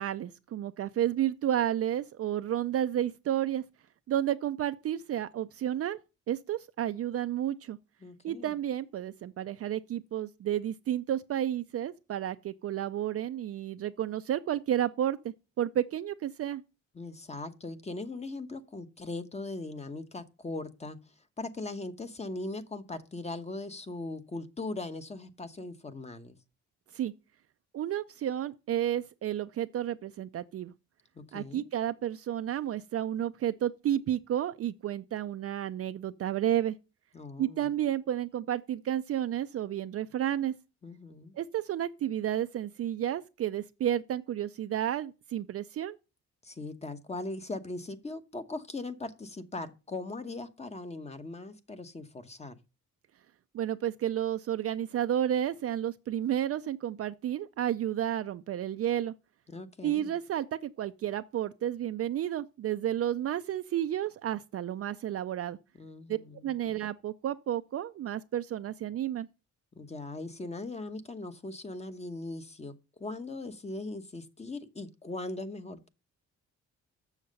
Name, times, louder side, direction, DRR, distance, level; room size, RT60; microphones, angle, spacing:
voice 1, 0.0-3.6 4.1-6.0 6.3-7.8 8.2-16.6 26.9-27.1 27.7-30.7 31.3-36.8 37.4-40.5 41.3-46.0 53.5-59.1 59.8-65.6 66.1-66.2 66.4-69.3, right 11 dB, 50° right, 0.5 m, -31 dB
voice 2, 8.0-8.5 16.9-21.0 21.4-26.3 31.1-31.7 37.1-37.7 40.8-41.3 46.4-52.5 59.5-60.1 65.8-66.5 69.8-75.9, left 2 dB, 20° left, 1.0 m, -40 dB
7.2 x 6.5 x 5.3 m
cardioid pair, 90°, 30 cm